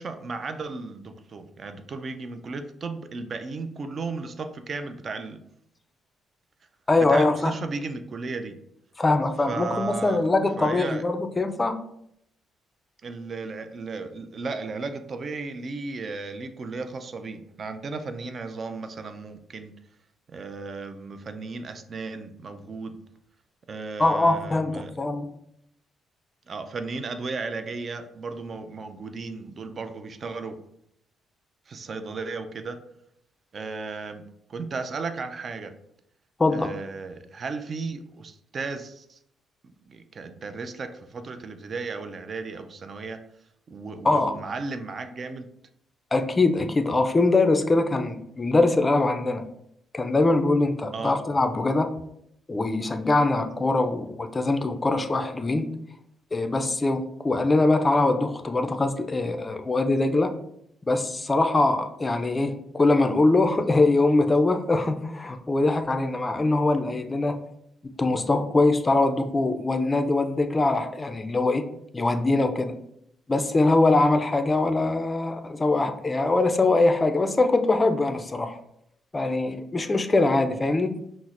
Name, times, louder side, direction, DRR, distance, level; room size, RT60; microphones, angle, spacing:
voice 1, 0.0-5.4 7.0-8.6 9.5-10.2 10.6-11.0 13.0-19.7 20.3-23.0 23.7-24.9 26.5-30.6 31.7-32.8 33.5-34.2 34.5-35.7 36.5-39.2 39.9-43.2 43.7-45.5 50.9-51.1, right 4 dB, 45° right, 9 dB, 0.4 m, -35 dB
voice 2, 6.9-7.5 9.0-11.8 24.0-25.3 36.4-36.7 44.0-44.3 46.1-49.4 49.9-51.9 52.5-55.7 56.3-60.3 60.9-67.4 68.0-71.6 71.9-72.7 73.3-78.6 79.1-81.0, left 2 dB, 25° left, 7 dB, 0.4 m, -22 dB
5.7 x 2.0 x 2.5 m, 0.75 s
cardioid pair, 90°, 0 cm